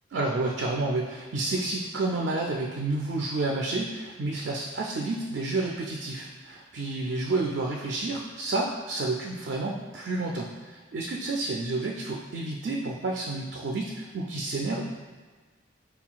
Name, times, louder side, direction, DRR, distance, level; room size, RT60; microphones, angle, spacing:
voice 1, 0.1-14.9, right 2 dB, 60° right, -1 dB, 0.4 m, -30 dB
5.6 x 2.3 x 2.3 m, 1.4 s
head